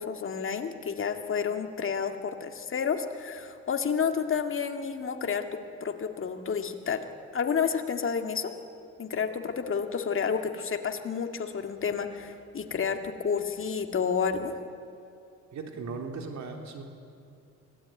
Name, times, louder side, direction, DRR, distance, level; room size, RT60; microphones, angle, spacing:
voice 1, 0.0-7.0 7.3-8.5 9.0-14.5, left 6 dB, 45° left, 6 dB, 2.0 m, -30 dB
voice 2, 15.5-16.8, right 4 dB, 65° right, 3 dB, 3.4 m, -37 dB
24.0 x 16.5 x 9.2 m, 2.6 s
cardioid pair, 90°, 30 cm